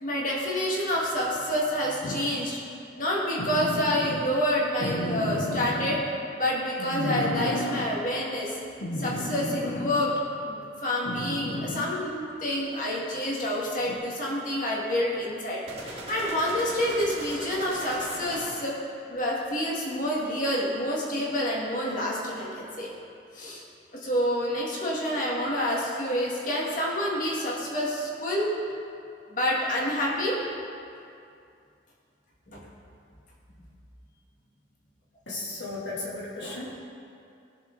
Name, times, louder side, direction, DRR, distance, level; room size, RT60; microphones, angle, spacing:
voice 1, 0.0-2.6 3.0-6.0 6.3-8.5 9.0-10.1 10.4-18.8 19.1-22.9 23.3-23.6 23.9-28.5 29.3-30.4 32.5-32.6, equal, 45° left, -4 dB, 2.0 m, -28 dB
sound 1, 2.0-2.4 3.4-4.3 4.8-6.0 6.8-7.9 8.8-10.0 11.0-12.0 13.9-14.0, left 1 dB, 70° left, 0.9 m, -32 dB
sound 2, 15.7-18.8, right 1 dB, 35° right, 1.9 m, -39 dB
voice 2, 35.3-36.8, left 2 dB, 90° left, -6 dB, 3.0 m, -35 dB
18.0 x 6.7 x 4.0 m, 2.5 s
head